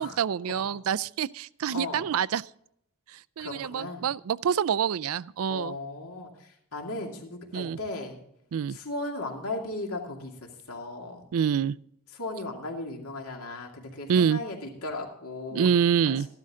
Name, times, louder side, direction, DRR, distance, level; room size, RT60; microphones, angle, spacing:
voice 1, 0.0-2.4 3.1-5.7 7.5-7.8 8.5-8.8 11.3-11.8 14.1-14.4 15.5-16.3, right 7 dB, 70° right, 0.4 m, -26 dB
voice 2, 1.7-2.1 3.4-4.0 5.5-8.2 8.7-11.3 12.1-15.7 16.1-16.2, left 2 dB, 75° left, 2.5 m, -36 dB
14.5 x 12.0 x 3.7 m
head